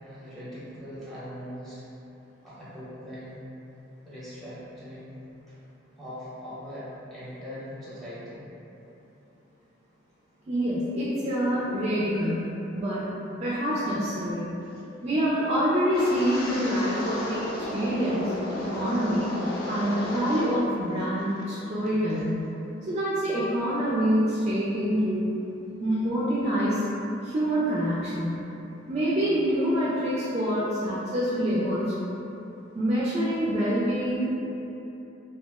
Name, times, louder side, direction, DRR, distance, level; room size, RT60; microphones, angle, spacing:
voice 1, 0.0-1.8 2.4-3.4 4.0-5.2 5.5-5.6 6.0-8.4, equal, ahead, -11 dB, 0.7 m, -41 dB
voice 2, 10.5-13.0 13.4-14.5 15.0-18.3 18.6-19.3 19.7-22.5 22.9-25.3 25.8-26.8 27.2-28.4 28.9-31.9 32.7-34.3, equal, 35° right, -8 dB, 0.3 m, -26 dB
Wind, 15.9-20.7 21.0-21.4 21.9-22.1, left 1 dB, 50° left, 0.4 m, -34 dB
2.6 x 2.0 x 3.4 m, 2.9 s
head